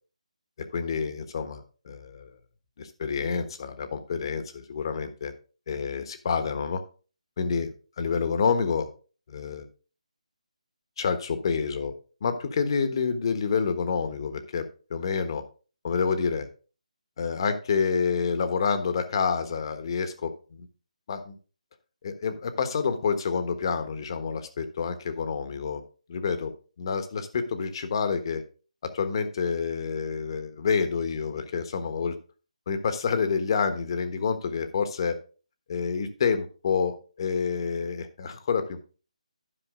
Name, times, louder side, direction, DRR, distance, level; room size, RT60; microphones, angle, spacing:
voice 1, 0.7-2.3 2.8-5.3 5.7-6.8 7.4-7.7 8.0-8.9 9.3-9.7 11.0-11.9 12.2-15.4 15.8-16.5 17.2-20.7 21.1-21.4 22.0-25.8 26.1-28.4 28.8-32.2 32.7-35.2 35.7-38.8, left 5 dB, 40° left, 9 dB, 1.3 m, -28 dB
11.5 x 5.8 x 3.7 m, 0.36 s
figure-of-eight pair, 160°, 4 cm